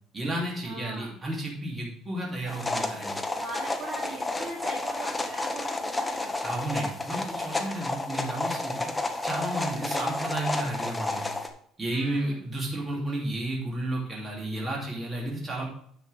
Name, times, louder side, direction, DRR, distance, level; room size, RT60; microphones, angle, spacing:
voice 1, 0.1-3.1 6.4-8.9 9.2-11.2 11.8-15.6, right 1 dB, 20° right, -3 dB, 2.9 m, -32 dB
voice 2, 0.6-1.2 3.3-6.3 9.7-10.2 11.9-12.4, right 2 dB, 45° right, -6 dB, 3.1 m, -40 dB
sound 1, 2.5-11.5, left 2 dB, 10° left, 0.9 m, -31 dB
9.8 x 7.1 x 3.5 m, 0.64 s
cardioid pair, 135°, 0 cm